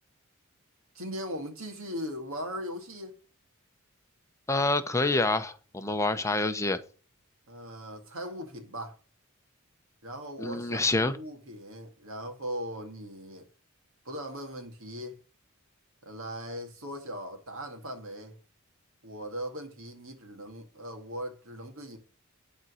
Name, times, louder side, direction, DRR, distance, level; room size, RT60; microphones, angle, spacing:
voice 1, 1.0-3.2 7.5-9.0 10.0-13.5 14.1-15.2 16.0-18.4 19.0-22.0, equal, 65° right, 2.1 m, -39 dB
voice 2, 4.5-6.8 10.4-11.1, left 2 dB, 15° left, 0.8 m, -27 dB
11.0 x 4.3 x 6.3 m
head